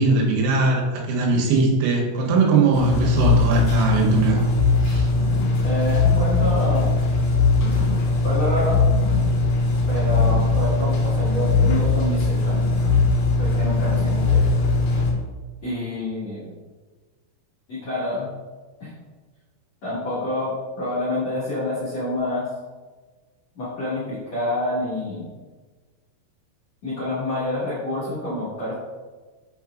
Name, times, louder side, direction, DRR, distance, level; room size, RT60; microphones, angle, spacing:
voice 1, 0.0-4.4 4.8-5.1, right 3 dB, 85° right, -1 dB, 3.7 m, -20 dB
sound 1, 2.7-15.1, left 3 dB, 85° left, 2.1 m, -20 dB
voice 2, 5.6-7.0 8.2-8.8 9.9-12.7 13.4-14.4 15.6-16.4 17.7-18.3 18.8-18.9 19.8-22.5 23.5-25.3 26.8-28.7, left 1 dB, 65° left, -10 dB, 1.6 m, -27 dB
7.2 x 5.7 x 2.4 m, 1.4 s
omnidirectional pair, 5.8 m